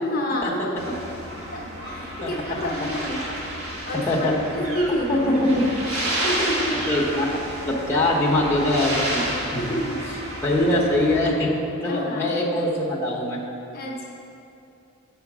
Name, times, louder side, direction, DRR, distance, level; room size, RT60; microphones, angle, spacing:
voice 1, 0.0-1.0 1.5-3.3 3.8-5.3 6.2-6.9 9.6-10.0 11.2-11.4 11.8-12.3 13.7-14.0, equal, 45° left, -1 dB, 0.9 m, -29 dB
sound 1, 0.8-11.3, right 1 dB, 85° right, 1.6 m, -31 dB
voice 2, 5.1-5.7 6.9-7.3 7.7-9.3 10.4-11.5 11.8-13.4, left 1 dB, 10° left, -4 dB, 1.0 m, -22 dB
8.0 x 4.4 x 6.1 m, 2.8 s
head